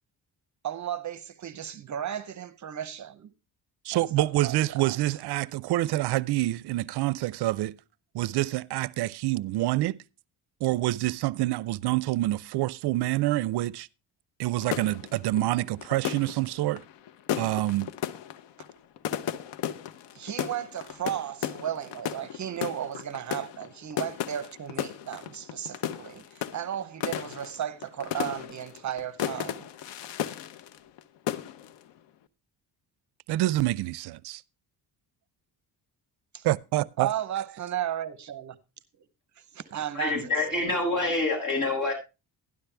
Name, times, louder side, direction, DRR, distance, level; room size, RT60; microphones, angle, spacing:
voice 1, 0.6-3.3 3.9-5.0 20.1-29.7 36.3-36.5 37.0-38.6 39.4-40.6, right 10 dB, 45° right, 0.8 m, -35 dB
voice 2, 3.8-7.7 8.1-10.0 10.6-13.9 14.4-16.8 17.4-17.9 33.3-34.4 36.4-37.1, right 16 dB, 70° right, 0.5 m, -27 dB
sound 1, 14.6-31.0 31.3-31.8, left 10 dB, 90° left, 0.8 m, -35 dB
voice 3, 39.9-41.9, left 2 dB, 45° left, 7.8 m, -26 dB
12.5 x 11.5 x 3.3 m
cardioid pair, 125°, 41 cm